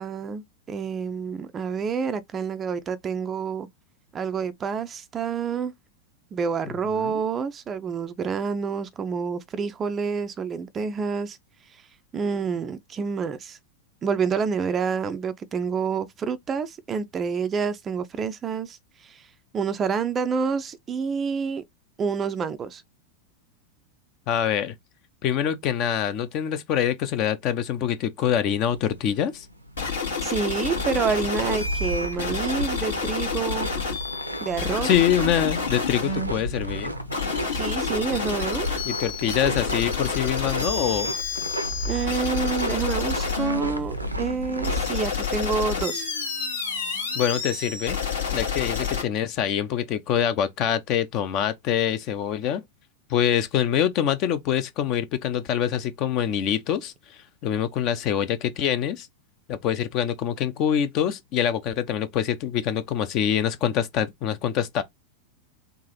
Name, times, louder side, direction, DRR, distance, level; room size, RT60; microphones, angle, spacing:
voice 1, 0.0-3.7 4.1-5.7 6.3-11.4 12.1-13.6 14.0-19.3 19.5-21.6 22.0-22.8 30.2-33.7 34.4-34.9 37.5-38.7 41.9-46.1, right 6 dB, 25° right, 0.4 m, -28 dB
voice 2, 6.7-7.2 24.3-24.7 25.2-29.5 34.8-36.9 38.8-41.1 47.1-48.0 48.3-52.6 53.1-56.9 57.4-59.1 59.5-64.8, left 9 dB, 40° left, 0.7 m, -25 dB
sound 1, 28.6-44.9, right 1 dB, 85° right, 0.7 m, -33 dB
sound 2, 29.8-49.0, left 5 dB, 70° left, 1.6 m, -29 dB
3.8 x 2.5 x 2.8 m
figure-of-eight pair, 90°, 0 cm